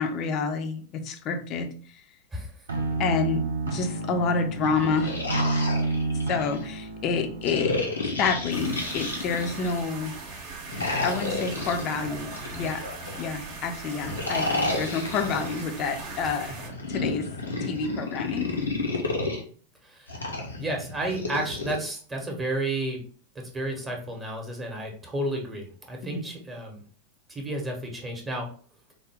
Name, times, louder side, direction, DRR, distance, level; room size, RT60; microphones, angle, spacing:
voice 1, 0.0-1.7 3.0-5.2 6.3-7.7 8.2-10.1 11.0-12.8 13.2-16.5 16.9-17.3 17.6-18.5 26.0-26.2, left 5 dB, 35° left, 6 dB, 0.5 m, -28 dB
sound 1, 2.7-7.8, right 3 dB, 70° right, 0.5 m, -30 dB
sound 2, 4.7-6.6 7.4-9.8 10.7-13.2 14.0-15.6 16.6-19.4 20.1-21.8, left 2 dB, 75° left, 0.8 m, -31 dB
sound 3, 8.5-16.7, right 3 dB, 45° right, 0.8 m, -39 dB
voice 2, 14.4-14.8 16.2-16.3 19.8-20.2 20.6-23.0 23.3-26.8 27.3-28.5, right 1 dB, 15° right, 1 dB, 0.9 m, -32 dB
3.6 x 2.2 x 3.4 m, 0.43 s
figure-of-eight pair, 90°, 0 cm